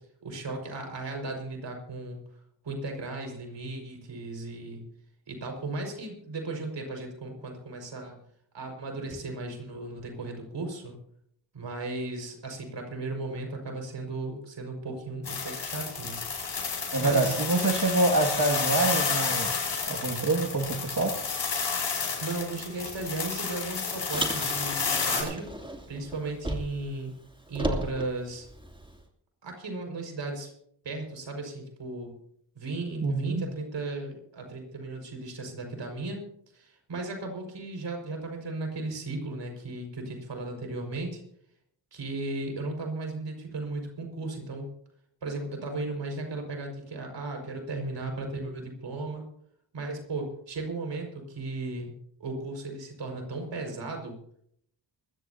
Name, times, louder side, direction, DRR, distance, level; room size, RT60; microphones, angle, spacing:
voice 1, 0.2-2.2 2.6-4.9 5.3-8.2 8.5-11.0 11.5-16.3 16.6-17.7 22.2-25.5 25.9-27.1 27.5-28.5 29.4-30.5 30.8-32.2 32.6-36.2 36.5-41.2 41.9-44.7 45.2-49.2 49.7-51.9 52.2-54.2, right 2 dB, 70° right, 2 dB, 5.3 m, -36 dB
sound 1, 15.3-25.2, left 5 dB, 70° left, 5.3 m, -31 dB
voice 2, 16.9-19.5 19.9-21.1 33.0-33.4, right 2 dB, 45° right, 1 dB, 2.1 m, -26 dB
Car, 24.1-26.9 27.2-29.0, right 1 dB, 10° right, 2.8 m, -35 dB
21.5 x 15.0 x 2.8 m, 0.68 s
cardioid pair, 50°, 44 cm